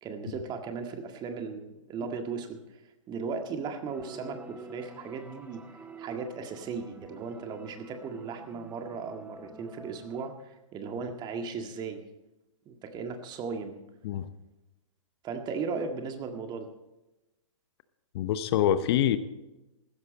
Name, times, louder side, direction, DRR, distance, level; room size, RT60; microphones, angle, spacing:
voice 1, 0.0-2.6 3.1-5.6 6.0-12.0 12.7-13.8 15.2-16.7, right 5 dB, 25° right, 5 dB, 1.8 m, -36 dB
sound 1, 3.9-10.3, right 3 dB, 10° right, 1.0 m, -48 dB
voice 2, 18.1-19.2, left 10 dB, 50° left, 12 dB, 0.9 m, -25 dB
15.5 x 13.0 x 4.2 m, 0.99 s
hypercardioid pair, 120°, 17 cm